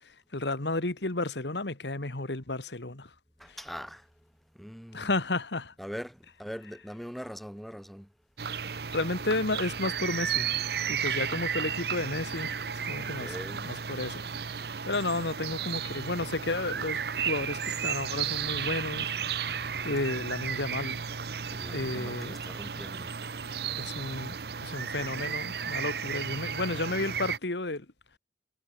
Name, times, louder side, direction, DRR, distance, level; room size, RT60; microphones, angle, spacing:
voice 1, 0.3-3.1 4.9-5.7 8.7-10.5 10.9-12.5 12.8-13.4 13.6-19.1 19.8-21.0 21.7-22.3 23.8-24.4 24.6-27.9, left 2 dB, 80° left, 1.9 m, -32 dB
voice 2, 3.4-4.1 4.5-5.1 5.8-8.1 13.0-13.7 21.5-23.1, equal, ahead, 2.5 m, -42 dB
sound 1, 8.4-27.4, right 7 dB, 65° right, 0.8 m, -33 dB
head